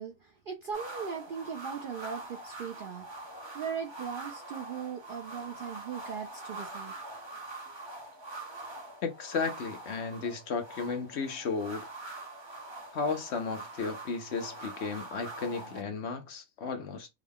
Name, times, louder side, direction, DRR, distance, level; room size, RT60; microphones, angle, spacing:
voice 1, 0.0-3.0 3.5-6.9, right 7 dB, 65° right, 0.5 m, -39 dB
sound 1, 0.7-15.8, right 2 dB, 25° right, 0.8 m, -44 dB
voice 2, 9.0-11.9 12.9-17.1, left 4 dB, 60° left, 0.8 m, -34 dB
3.6 x 2.2 x 3.5 m
omnidirectional pair, 1.4 m